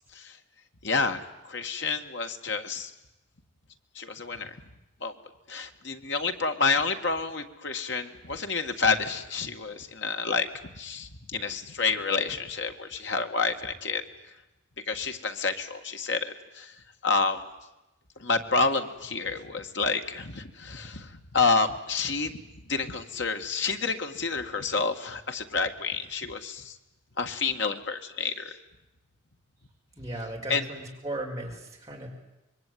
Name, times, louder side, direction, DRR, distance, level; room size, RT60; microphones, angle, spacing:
voice 1, 0.8-1.2 1.4-2.9 4.0-4.6 5.0-5.1 5.5-10.5 10.7-14.0 14.9-16.7 17.0-17.4 18.2-22.3 22.7-26.7 27.2-28.6 30.5-30.6, left 4 dB, 60° left, 6 dB, 1.9 m, -29 dB
voice 2, 29.9-32.1, right 1 dB, 15° right, -1 dB, 5.2 m, -36 dB
26.0 x 22.5 x 9.4 m, 0.97 s
head